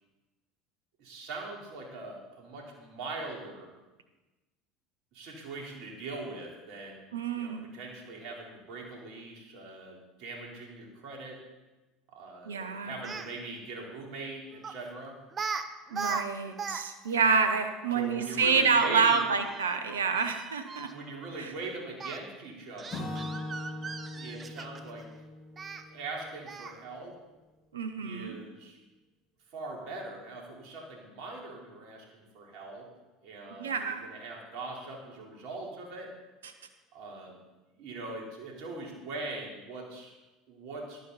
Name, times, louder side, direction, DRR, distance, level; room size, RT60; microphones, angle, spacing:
voice 1, 1.0-3.7 5.1-11.4 12.1-15.1 17.9-19.3 20.9-23.1 24.2-25.1 25.9-27.2 28.0-28.8 29.5-32.9 33.2-36.1 36.9-37.4 37.8-40.1 40.5-41.0, right 3 dB, 65° right, -1 dB, 3.8 m, -41 dB
voice 2, 7.1-7.6 12.4-13.1 15.9-20.9 21.4-21.5 27.7-28.4 33.6-34.1, right 5 dB, 90° right, 8 dB, 1.0 m, -28 dB
Speech, 13.0-13.3 14.6-14.8 15.3-15.6 15.9-16.8 17.1-17.2 18.8-20.9 22.0-22.2 22.8-24.9 25.6-25.8 26.5-26.8, right 5 dB, 30° right, 1.0 m, -37 dB
Acoustic guitar / Strum, 22.9-26.9, left 2 dB, 45° left, 4.9 m, -41 dB
14.5 x 12.0 x 4.1 m, 1.1 s
hypercardioid pair, 75°, 0 cm